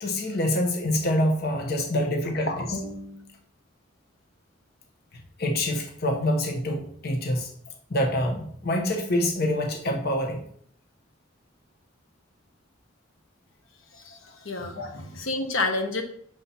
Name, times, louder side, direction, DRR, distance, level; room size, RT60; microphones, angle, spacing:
voice 1, 0.0-3.2 5.4-7.5 7.9-10.4 14.8-14.9, left 1 dB, 55° left, 3 dB, 0.9 m, -26 dB
voice 2, 14.0-16.0, left 3 dB, 85° left, 5 dB, 1.1 m, -29 dB
6.6 x 4.2 x 5.6 m, 0.64 s
head